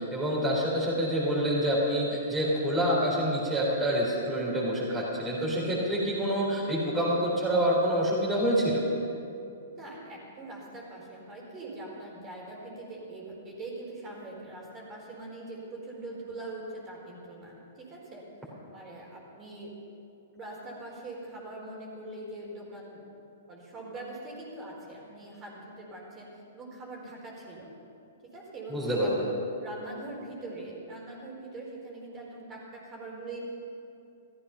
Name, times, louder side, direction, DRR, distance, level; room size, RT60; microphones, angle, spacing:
voice 1, 0.0-8.8 28.7-29.3, equal, 10° right, -7 dB, 3.8 m, -27 dB
voice 2, 9.7-18.3 18.7-19.7 20.4-23.0 23.5-27.7 28.3-28.8 29.6-33.4, right 2 dB, 25° right, -3 dB, 4.2 m, -42 dB
15.5 x 14.0 x 5.7 m, 2.7 s
figure-of-eight pair, 110°, 0 cm